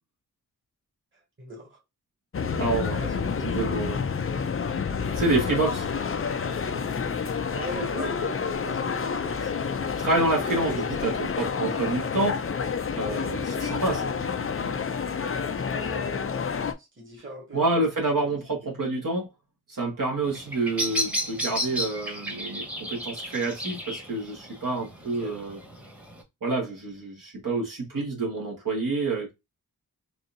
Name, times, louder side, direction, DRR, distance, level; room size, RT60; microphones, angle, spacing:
voice 1, 1.4-1.8 3.0-3.7 7.5-9.5 13.6-14.1 15.7-16.4 16.8-18.7 25.0-25.4, right 1 dB, 35° right, 1.8 m, -41 dB
sound 1, 2.3-16.7, left 6 dB, 40° left, 0.5 m, -29 dB
voice 2, 2.6-3.1 3.4-4.0 5.1-5.9 10.0-12.4 12.9-14.0 17.5-19.3 19.7-25.6 26.4-29.3, right 2 dB, 65° right, 1.7 m, -28 dB
Bird vocalization bird call bird song, 20.2-26.2, equal, 5° right, 1.1 m, -33 dB
4.1 x 2.7 x 2.6 m
wide cardioid pair, 85°, 36 cm